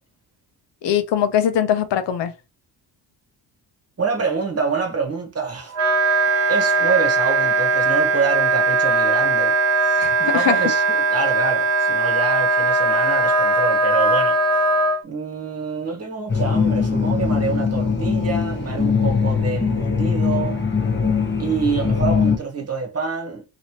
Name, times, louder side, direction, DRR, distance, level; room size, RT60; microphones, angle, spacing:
voice 1, 0.8-2.3 10.0-10.6, left 9 dB, 75° left, 0.6 m, -21 dB
voice 2, 4.0-5.8 6.5-14.6 15.0-20.6 21.4-23.4, right 5 dB, 35° right, 1.1 m, -26 dB
Wind instrument woodwind instrument, 5.7-15.0, right 3 dB, 80° right, 1.1 m, -19 dB
sound 1, 16.3-22.4, left 5 dB, 25° left, 0.9 m, -21 dB
3.0 x 2.8 x 2.9 m
cardioid pair, 105°, 43 cm